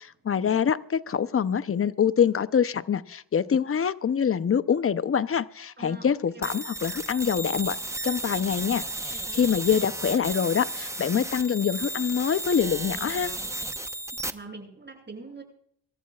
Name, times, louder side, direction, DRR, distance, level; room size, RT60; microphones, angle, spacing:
voice 1, 0.3-7.8 8.0-13.3, left 7 dB, 35° left, 0.7 m, -25 dB
voice 2, 5.8-6.5 14.3-15.4, right 3 dB, 25° right, 7.5 m, -43 dB
sound 1, 6.4-14.3, right 1 dB, 5° right, 0.9 m, -34 dB
26.0 x 14.0 x 2.4 m
cardioid pair, 75°, 41 cm